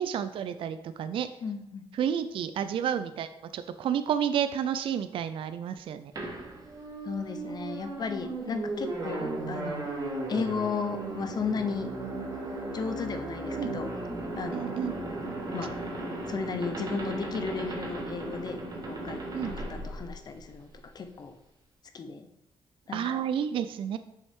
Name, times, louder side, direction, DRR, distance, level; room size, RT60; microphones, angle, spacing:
voice 1, 0.0-1.3 2.0-3.3 3.5-6.1 13.6-13.7 14.5-14.9 19.3-19.6 22.9-24.0, right 9 dB, 60° right, 11 dB, 0.3 m, -30 dB
voice 2, 1.4-1.8 7.0-9.9 10.3-11.9 12.7-13.9 14.4-14.8 15.5-15.8 16.3-18.6 18.9-20.7 20.9-21.3 21.9-22.3 22.9-23.2, left 5 dB, 45° left, 8 dB, 0.7 m, -34 dB
sound 1, 6.2-20.7, right 2 dB, 40° right, 1.5 m, -36 dB
6.3 x 5.3 x 3.6 m, 0.85 s
cardioid pair, 105°, 10 cm